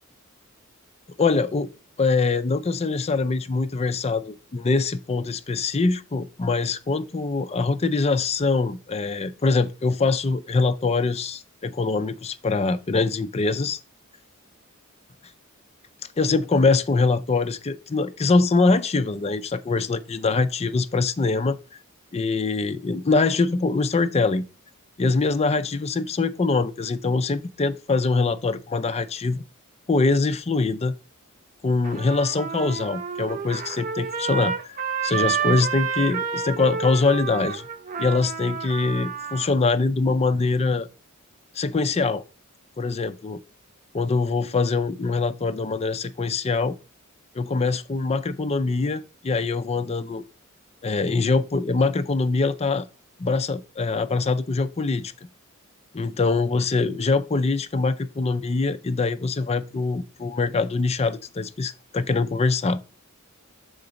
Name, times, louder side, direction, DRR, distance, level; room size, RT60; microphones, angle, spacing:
voice 1, 1.2-1.7 2.0-13.8 16.2-21.6 22.1-24.4 25.0-29.4 29.9-30.9 31.6-34.8 35.0-37.6 38.0-40.9 41.5-42.2 42.8-43.4 43.9-46.8 47.4-50.2 50.8-52.9 53.2-55.1 55.9-62.8, left 3 dB, 30° left, 0.4 m, -23 dB
Trumpet, 31.8-39.5, right 6 dB, 40° right, 0.8 m, -29 dB
6.7 x 3.9 x 5.0 m
head